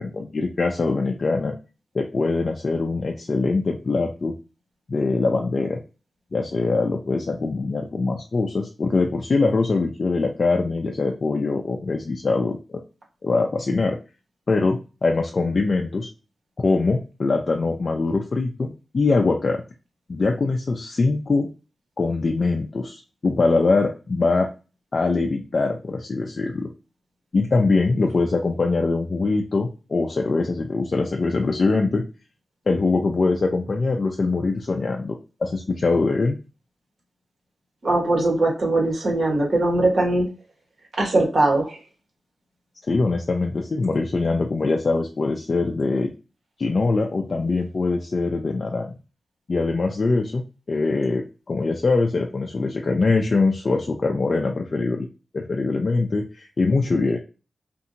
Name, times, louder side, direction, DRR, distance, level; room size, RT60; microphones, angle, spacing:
voice 1, 0.0-1.6 1.9-4.3 4.9-5.8 6.3-12.8 13.2-14.0 14.5-16.1 16.6-19.6 20.1-21.5 22.0-24.5 24.9-26.7 27.3-32.0 32.7-36.4 42.9-46.1 46.6-48.9 49.5-55.1 55.3-57.2, left 3 dB, 55° left, 2 dB, 0.4 m, -23 dB
voice 2, 37.8-40.3 41.0-41.8, right 2 dB, 65° right, -1 dB, 1.2 m, -20 dB
2.7 x 2.5 x 2.6 m, 0.32 s
cardioid pair, 55°, 0 cm